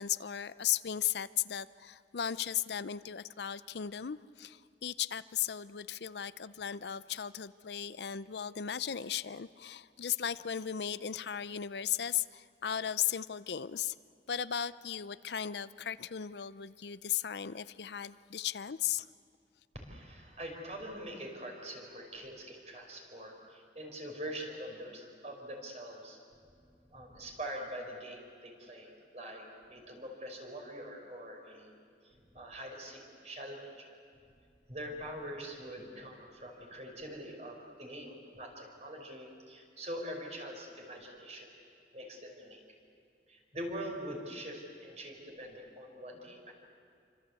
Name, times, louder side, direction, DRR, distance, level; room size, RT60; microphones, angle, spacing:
voice 1, 0.0-14.0 14.3-19.1, left 9 dB, 75° left, 15 dB, 0.6 m, -36 dB
voice 2, 19.7-26.2 26.9-31.7 32.0-33.9 34.7-41.5 41.9-42.6 43.3-46.5, equal, 40° right, 1 dB, 5.4 m, -44 dB
28.0 x 25.5 x 8.3 m, 2.4 s
head